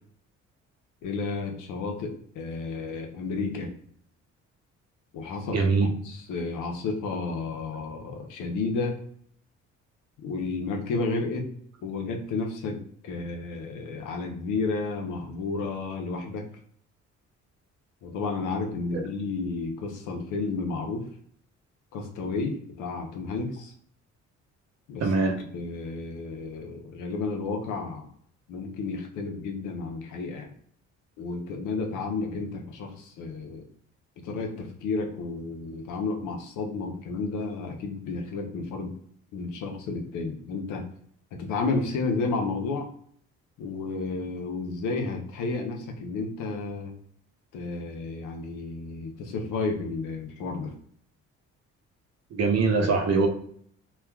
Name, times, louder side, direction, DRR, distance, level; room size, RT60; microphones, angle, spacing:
voice 1, 1.0-3.7 5.1-5.6 6.1-9.0 10.2-11.5 11.8-16.4 18.0-21.1 21.9-23.7 24.9-25.0 25.5-28.0 28.5-30.5 31.2-33.7 34.2-38.9 39.3-40.8 41.3-42.9 43.6-46.9 47.5-50.7, left 3 dB, 85° left, 3 dB, 0.7 m, -32 dB
voice 2, 5.5-5.9 18.9-19.0 25.0-25.4 52.3-53.3, right 4 dB, 55° right, 4 dB, 0.7 m, -23 dB
3.2 x 2.3 x 2.2 m, 0.62 s
cardioid pair, 90°, 30 cm